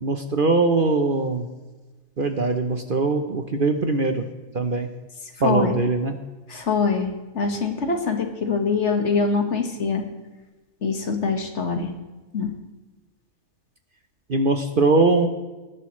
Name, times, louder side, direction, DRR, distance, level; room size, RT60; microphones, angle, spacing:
voice 1, 0.0-1.5 2.2-4.2 4.5-4.9 5.4-6.2 14.3-15.3, right 3 dB, 45° right, 6 dB, 0.9 m, -21 dB
voice 2, 5.4-5.8 6.5-10.1 10.8-11.9 12.3-12.5, left 4 dB, 55° left, 4 dB, 1.8 m, -24 dB
19.5 x 11.0 x 3.1 m, 1.2 s
omnidirectional pair, 1.4 m